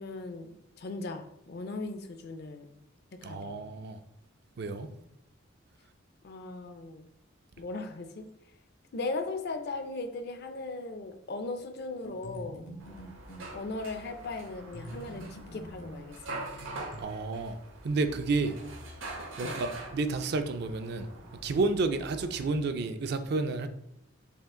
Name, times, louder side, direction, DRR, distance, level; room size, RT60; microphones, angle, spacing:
voice 1, 0.0-2.7 3.2-3.6 6.2-7.1 7.6-8.2 8.9-12.7 13.5-16.4 19.4-19.6, left 3 dB, 50° left, 0.5 m, -38 dB
voice 2, 3.2-4.0 4.6-4.9 17.0-17.6 17.8-18.6 19.4-21.1 21.4-23.7, right 3 dB, 55° right, 0.4 m, -30 dB
sound 1, 12.0-13.5 14.7-17.0, equal, 80° left, 1.0 m, -45 dB
sound 2, 12.8-22.6, right 2 dB, 80° right, 0.9 m, -44 dB
5.6 x 2.4 x 3.6 m
head